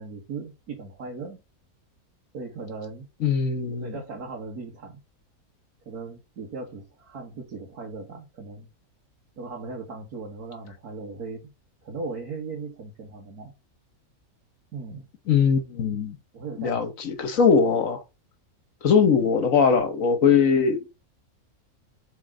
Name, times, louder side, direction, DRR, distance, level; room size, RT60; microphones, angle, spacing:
voice 1, 0.0-1.4 2.3-3.1 3.7-5.0 5.9-8.7 9.4-11.5 11.8-13.5 14.7-15.1 16.3-16.9 17.2-17.4, right 4 dB, 85° right, 1.9 m, -38 dB
voice 2, 3.2-4.0 15.3-16.2 16.6-18.0 18.8-21.0, left 6 dB, 65° left, 1.3 m, -21 dB
7.5 x 4.1 x 3.7 m
omnidirectional pair, 1.6 m